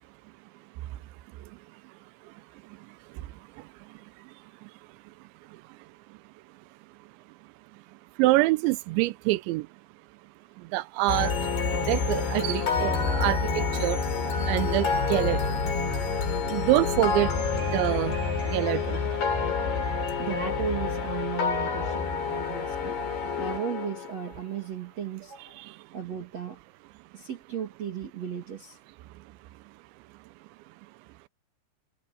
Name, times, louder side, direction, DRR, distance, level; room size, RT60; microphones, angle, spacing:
voice 1, 8.2-9.6 10.7-11.3 11.7-14.0 14.5-15.6 16.5-17.3 17.7-18.1 18.4-19.0, right 19 dB, 85° right, 3.1 m, -25 dB
sound 1, 11.1-24.4, left 5 dB, 60° left, 7.9 m, -28 dB
voice 2, 20.2-23.0 23.4-26.6 27.1-28.8, right 8 dB, 40° right, 3.2 m, -35 dB
omnidirectional pair, 5.2 m